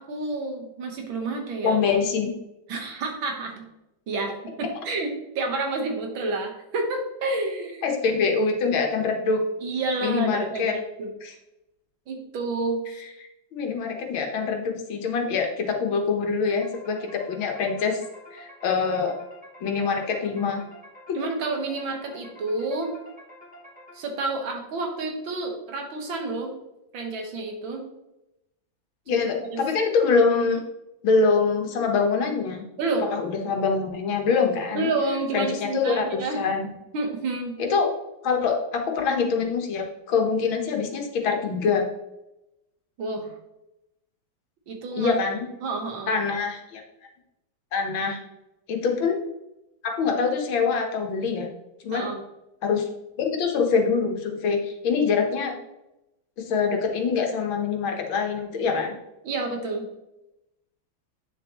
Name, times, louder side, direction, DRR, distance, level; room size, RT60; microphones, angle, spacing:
voice 1, 0.0-1.8 2.7-3.6 4.1-7.8 9.6-11.1 12.1-12.8 21.1-22.9 23.9-26.6 26.9-27.9 29.1-29.6 32.8-33.1 34.7-36.5 36.9-37.8 43.0-43.3 44.7-45.1 45.6-46.1 51.9-52.2 59.2-59.9, right 3 dB, 80° right, 3 dB, 2.0 m, -29 dB
voice 2, 1.6-2.3 7.8-9.4 10.0-10.7 11.2-11.3 13.2-18.0 18.3-19.1 19.6-20.6 29.1-30.6 31.0-32.6 33.1-34.9 35.3-36.7 37.6-37.9 38.2-41.9 45.0-45.5 46.1-46.8 47.7-48.2 48.7-49.2 49.8-51.5 51.8-52.1 52.6-52.9 53.2-55.5 56.5-59.0, left 5 dB, 85° left, 3 dB, 1.9 m, -24 dB
sound 1, 16.5-24.3, equal, 5° right, 2.1 m, -48 dB
8.8 x 6.7 x 3.0 m, 0.91 s
omnidirectional pair, 2.1 m